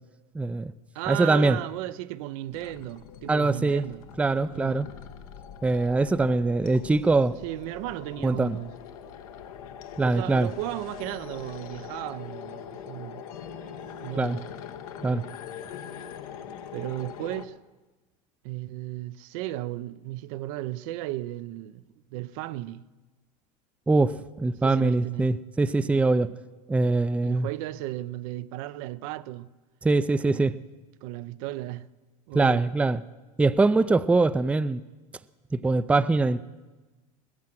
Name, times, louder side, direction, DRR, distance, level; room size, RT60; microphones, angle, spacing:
voice 1, 0.3-0.7 1.1-1.6 3.3-3.8 4.2-4.9 5.6-7.4 8.2-8.6 10.0-10.5 14.2-14.4 15.0-15.2 23.9-26.3 26.7-27.5 29.8-30.6 32.3-33.0 33.4-34.8 35.5-36.4, right 3 dB, 5° right, 0.4 m, -23 dB
voice 2, 0.9-4.0 4.5-4.8 6.2-6.3 7.4-8.7 10.0-13.2 14.0-14.5 15.0-15.3 16.7-17.6 18.4-21.8 22.1-22.9 24.6-25.3 25.8-26.1 27.2-29.5 30.2-30.7 31.0-31.9 32.3-32.7, right 16 dB, 70° right, 0.6 m, -35 dB
sound 1, 2.5-17.5, left 8 dB, 80° left, 1.1 m, -42 dB
20.0 x 7.6 x 7.6 m
supercardioid pair, 100°, 18 cm